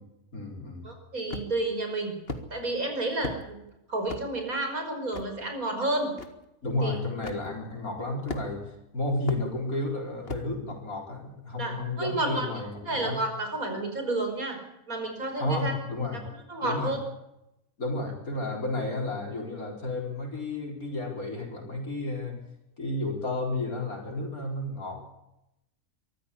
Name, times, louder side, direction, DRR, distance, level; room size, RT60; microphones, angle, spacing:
voice 1, 0.3-0.9 6.6-13.2 15.4-16.2 16.6-16.9 17.8-22.4 22.8-25.0, left 2 dB, 75° left, 0 dB, 4.7 m, -32 dB
voice 2, 0.8-2.2 2.5-3.6 3.9-6.1 6.8-7.0 11.6-12.5 12.9-14.6 14.9-15.7 16.5-17.0, right 2 dB, 70° right, 5 dB, 5.8 m, -30 dB
sound 1, 1.3-1.7 2.3-2.5 3.2-3.4 4.1-4.3 5.1-5.3 6.2-6.3 7.2-7.4 8.3-8.7 9.3-9.4 10.3-10.5, left 3 dB, 40° left, 2.1 m, -36 dB
24.0 x 14.0 x 8.4 m, 0.86 s
omnidirectional pair, 1.5 m